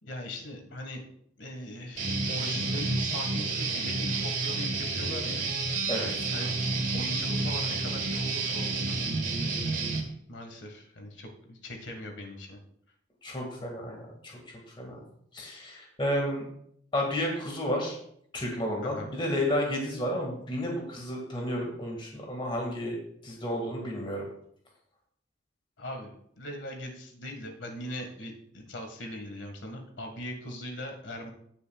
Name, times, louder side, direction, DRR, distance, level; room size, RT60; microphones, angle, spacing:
voice 1, 0.0-1.0 1.4-5.4 6.3-9.0 9.4-9.9 10.3-12.6 18.8-19.1 25.8-31.3, left 1 dB, 75° left, 2 dB, 1.7 m, -40 dB
Guitar, 2.0-10.0, right 3 dB, 45° right, 1.5 m, -30 dB
voice 2, 5.9-6.4 13.2-14.3 14.8-15.0 15.3-16.5 16.9-18.0 18.3-23.0 23.2-24.3, equal, 25° left, 0 dB, 1.9 m, -31 dB
16.5 x 6.9 x 2.3 m, 0.68 s
head